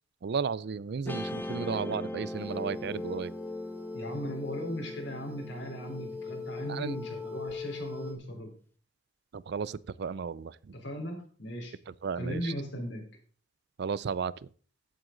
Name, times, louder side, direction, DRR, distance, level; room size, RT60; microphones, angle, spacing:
voice 1, 0.2-3.3 6.7-7.0 9.3-10.7 12.0-12.5 13.8-14.3, right 6 dB, 60° right, 0.4 m, -34 dB
Guitar, 1.1-7.5, left 1 dB, 10° left, 0.6 m, -40 dB
sound 1, 2.3-8.1, left 5 dB, 10° right, 2.5 m, -41 dB
voice 2, 3.9-8.5 10.7-11.7 12.2-13.0, equal, 65° left, 3.8 m, -37 dB
15.0 x 7.9 x 3.9 m
head